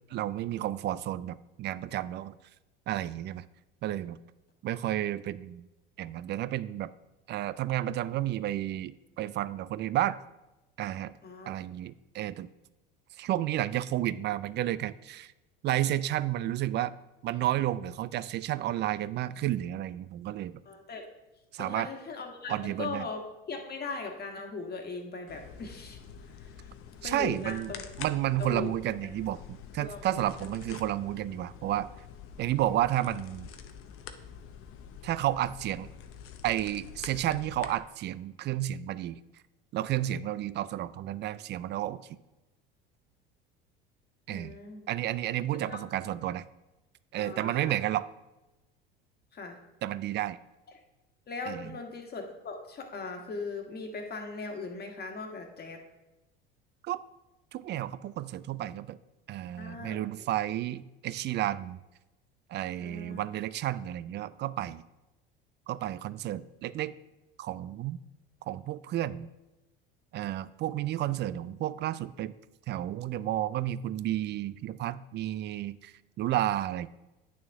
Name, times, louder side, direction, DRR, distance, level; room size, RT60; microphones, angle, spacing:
voice 1, 0.1-2.4 2.9-3.5 3.8-4.2 4.6-5.7 6.0-6.9 7.3-10.2 10.8-11.1 11.5-12.5 13.2-15.3 15.6-16.9 17.2-20.6 21.5-21.9 22.5-23.1 27.0-27.7 28.0-31.9 32.4-33.5 35.0-35.9 36.4-39.2 39.7-42.0 44.3-44.6 44.9-46.4 47.1-48.1 49.8-50.4 51.5-51.7 56.8-57.0 57.5-59.0 59.3-61.8 62.5-64.8 65.7-66.9 67.4-68.0 68.5-69.3 70.1-72.3 72.7-76.9, right 13 dB, 40° right, 17 dB, 0.4 m, -31 dB
voice 2, 20.6-21.0 21.6-26.0 26.4-26.7 27.0-27.8 28.4-28.7 29.8-30.2 44.3-44.8 45.6-45.8 47.2-47.8 49.3-49.6 51.3-55.8 59.6-60.0 62.8-63.2, left 4 dB, 35° left, 3 dB, 1.6 m, -39 dB
sound 1, 25.3-37.8, left 7 dB, 50° left, 0.8 m, -47 dB
9.1 x 6.2 x 3.5 m, 1.0 s
hypercardioid pair, 80°, 29 cm